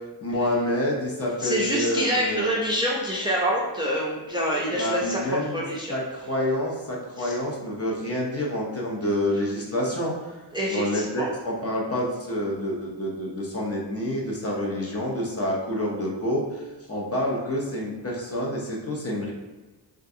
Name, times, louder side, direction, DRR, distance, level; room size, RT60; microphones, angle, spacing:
voice 1, 0.2-2.6 4.7-5.6 5.9-10.3 10.7-19.3, left 1 dB, 35° left, -3 dB, 0.6 m, -28 dB
voice 2, 1.4-5.9 7.2-7.3 10.5-11.3, equal, 10° right, -4 dB, 0.4 m, -26 dB
3.6 x 2.4 x 2.6 m, 1.2 s
wide cardioid pair, 125°, 43 cm